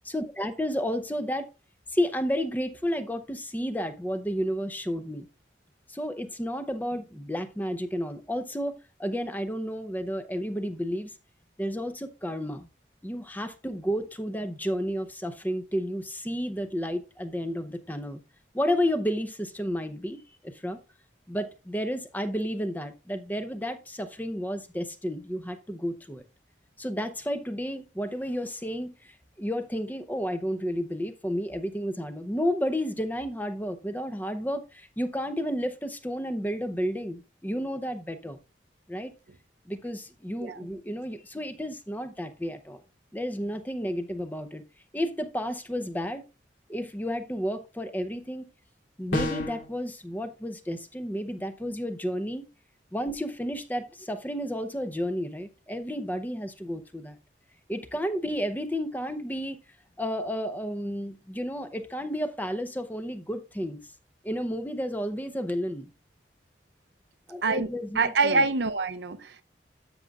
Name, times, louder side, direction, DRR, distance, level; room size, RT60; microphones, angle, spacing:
voice 1, 0.0-1.5 1.9-5.3 5.9-11.2 11.6-12.7 13.0-18.2 18.5-20.8 21.3-26.2 26.8-38.4 38.9-39.1 39.7-42.8 43.1-44.6 44.9-46.2 46.7-48.5 49.0-52.4 52.9-57.2 57.7-59.6 60.0-63.8 64.2-65.9 67.3-68.4, equal, 10° left, 0.6 m, -31 dB
sound 1, 49.1-49.7, left 2 dB, 80° left, 2.8 m, -28 dB
voice 2, 68.0-69.4, right 4 dB, 65° right, 0.6 m, -25 dB
13.0 x 6.4 x 2.4 m
head